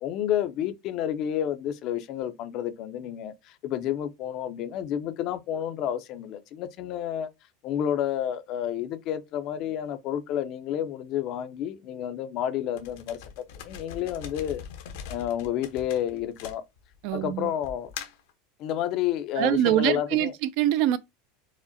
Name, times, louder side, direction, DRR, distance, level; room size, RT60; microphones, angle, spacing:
voice 1, 0.0-7.3 7.6-13.2 13.6-14.6 15.1-16.6 17.1-17.9 18.6-20.3, left 10 dB, 45° left, 0.5 m, -30 dB
sound 1, 12.8-17.1 17.6-18.3, left 7 dB, 75° left, 0.8 m, -41 dB
voice 2, 17.0-17.5 19.4-21.0, right 13 dB, 60° right, 0.3 m, -24 dB
4.8 x 2.1 x 2.7 m
supercardioid pair, 140°, 0 cm